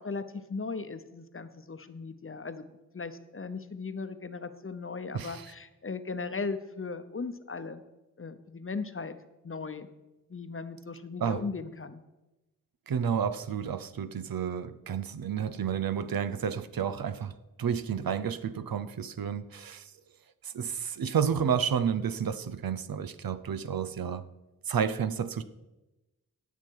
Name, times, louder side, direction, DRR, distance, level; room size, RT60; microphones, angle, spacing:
voice 1, 0.0-2.6 2.9-7.8 8.2-9.2 9.4-9.9 10.3-12.0, left 4 dB, 40° left, 0.8 m, -37 dB
voice 2, 5.1-5.5 11.2-11.5 12.9-19.9 20.4-24.3 24.7-25.4, right 7 dB, 90° right, 0.7 m, -31 dB
17.5 x 7.2 x 4.7 m
wide cardioid pair, 75°, 34 cm